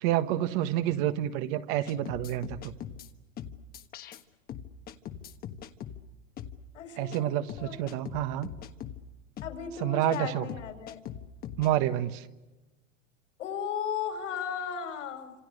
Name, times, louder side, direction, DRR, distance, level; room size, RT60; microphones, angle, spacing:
voice 1, 0.0-2.7 7.0-8.5 9.8-10.5 11.6-12.3, right 13 dB, 40° right, 11 dB, 1.4 m, -28 dB
sound 1, 1.9-3.1 3.4-4.2 4.5-6.0 6.4-6.6 7.1-7.2 7.5-9.0 9.4-9.6 10.1-10.2 10.5-11.7, left 10 dB, 25° left, 1.4 m, -41 dB
voice 2, 6.7-7.9 9.4-11.0 13.4-15.3, left 7 dB, 75° left, 7 dB, 5.8 m, -36 dB
29.5 x 27.0 x 6.6 m, 1.1 s
supercardioid pair, 150°, 38 cm